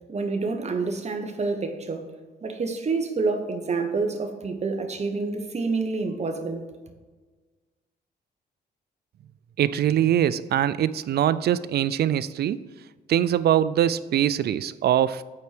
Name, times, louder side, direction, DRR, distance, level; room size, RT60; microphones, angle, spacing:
voice 1, 0.1-2.0 2.4-6.6, right 4 dB, 35° right, 1.2 m, -28 dB
voice 2, 9.6-12.6 13.1-15.2, right 10 dB, 65° right, 0.4 m, -23 dB
8.5 x 4.6 x 5.1 m
cardioid pair, 90°, 18 cm